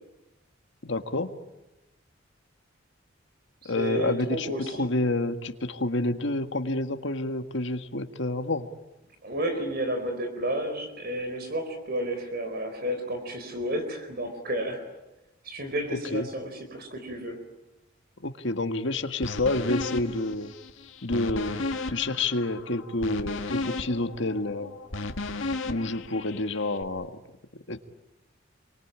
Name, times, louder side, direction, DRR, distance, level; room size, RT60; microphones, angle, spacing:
voice 1, 0.8-1.3 3.7-8.7 15.9-16.3 18.2-20.5 21.0-21.6 21.9-24.8 25.7-27.2 27.7-27.8, left 2 dB, 65° left, 7 dB, 1.8 m, -29 dB
voice 2, 3.7-4.9 9.2-14.8 15.4-17.4, right 1 dB, 55° right, 6 dB, 4.3 m, -31 dB
sound 1, 19.2-26.8, left 3 dB, 85° left, 1.9 m, -34 dB
28.5 x 24.0 x 8.7 m, 0.96 s
head